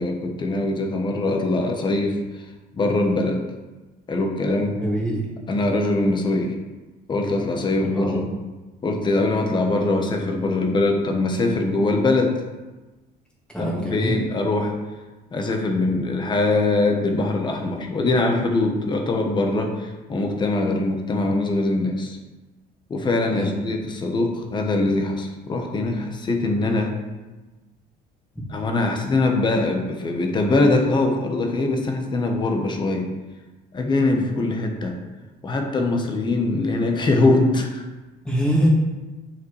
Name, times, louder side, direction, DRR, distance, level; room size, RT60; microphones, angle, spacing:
voice 1, 0.0-2.5 2.7-3.4 4.1-4.8 5.5-6.6 7.1-8.2 8.8-12.4 13.6-14.7 15.3-22.2 22.9-26.9 28.5-33.1 33.7-35.0 35.4-37.8, left 2 dB, 25° left, 3 dB, 1.1 m, -22 dB
voice 2, 4.8-5.3 7.8-8.2 13.5-14.2 23.3-23.5 38.2-38.7, equal, 5° left, -5 dB, 2.1 m, -24 dB
9.5 x 5.7 x 3.2 m, 1.2 s
cardioid pair, 145°, 17 cm